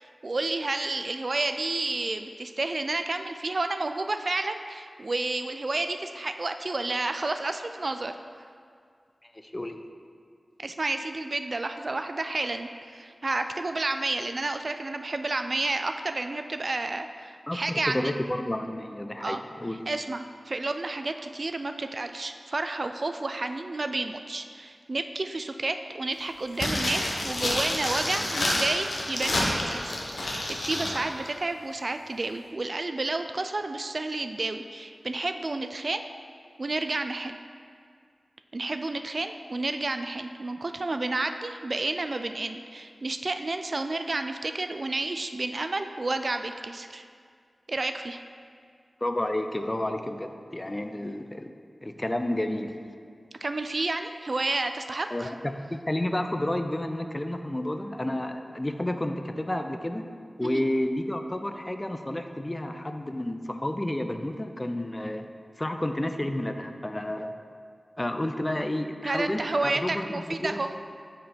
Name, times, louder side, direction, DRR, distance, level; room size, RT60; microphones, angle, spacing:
voice 1, 0.0-8.2 10.6-18.1 19.2-19.4 19.9-36.0 36.6-37.4 38.5-47.0 47.7-48.2 53.4-55.3 60.4-60.6 69.0-70.7, right 2 dB, 60° right, 8 dB, 0.3 m, -31 dB
voice 2, 9.2-9.8 17.5-19.8 49.0-51.5 51.8-52.8 55.1-55.5 55.9-60.1 60.4-65.3 65.6-67.3 68.0-70.6, left 1 dB, 25° left, 7 dB, 0.4 m, -31 dB
sound 1, 26.5-31.0 31.3-31.4, left 1 dB, 80° left, 0.9 m, -28 dB
5.6 x 4.5 x 5.0 m, 2.2 s
cardioid pair, 40°, 0 cm